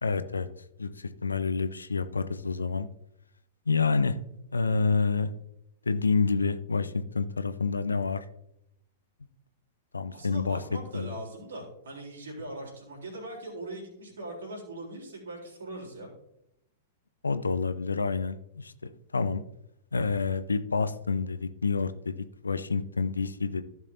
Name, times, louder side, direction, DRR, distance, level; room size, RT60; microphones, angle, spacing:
voice 1, 0.0-0.5 0.8-2.9 3.7-4.2 4.5-5.3 5.9-8.2 9.9-10.6 10.9-11.1 17.2-18.7 19.1-19.4 19.9-22.1 22.4-23.6, left 4 dB, 75° left, 12 dB, 0.6 m, -28 dB
voice 2, 10.1-16.1, right 1 dB, 65° right, -2 dB, 3.8 m, -40 dB
15.0 x 6.2 x 2.8 m, 0.79 s
figure-of-eight pair, 100°, 0 cm